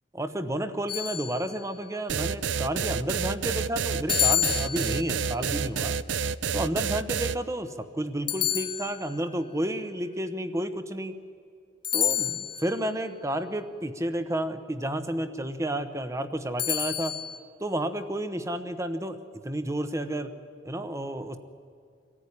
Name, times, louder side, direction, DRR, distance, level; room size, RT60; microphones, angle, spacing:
voice 1, 0.1-6.0 6.5-11.2 11.9-17.2 17.6-20.3 20.6-21.4, right 1 dB, 15° right, 10 dB, 1.0 m, -31 dB
sound 1, 0.9-1.8 4.1-5.3 8.3-9.3 11.8-12.8 16.6-17.4, left 12 dB, 25° left, 0.5 m, -29 dB
sound 2, 2.1-7.4, right 6 dB, 70° right, 0.5 m, -29 dB
25.0 x 14.5 x 9.8 m, 2.3 s
head